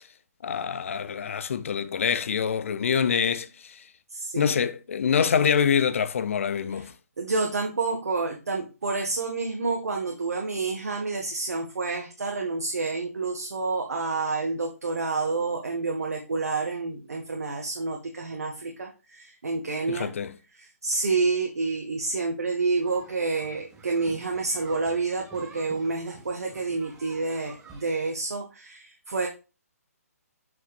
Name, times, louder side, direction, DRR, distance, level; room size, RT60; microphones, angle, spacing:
voice 1, 0.4-3.8 4.4-6.9 19.9-20.3, left 7 dB, 55° left, 0.7 m, -25 dB
voice 2, 4.1-4.6 6.7-6.8 7.2-20.1 20.5-29.3, right 3 dB, 70° right, 1.5 m, -29 dB
sound 1, 22.8-27.8, right 4 dB, 10° right, 1.9 m, -49 dB
7.6 x 5.8 x 2.4 m
figure-of-eight pair, 140°, 9 cm